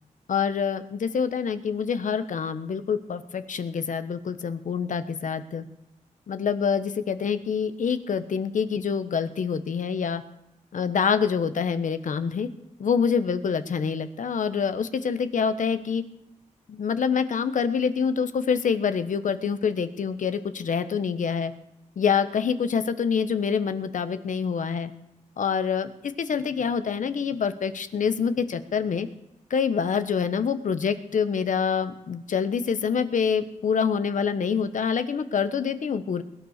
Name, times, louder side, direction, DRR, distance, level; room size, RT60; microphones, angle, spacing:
voice 1, 0.3-5.6 6.3-10.2 10.7-12.5 12.8-16.0 16.7-21.5 22.0-24.9 25.4-29.1 29.5-36.2, left 6 dB, 75° left, 11 dB, 1.2 m, -26 dB
21.0 x 10.0 x 6.6 m, 0.84 s
wide cardioid pair, 110°, 13 cm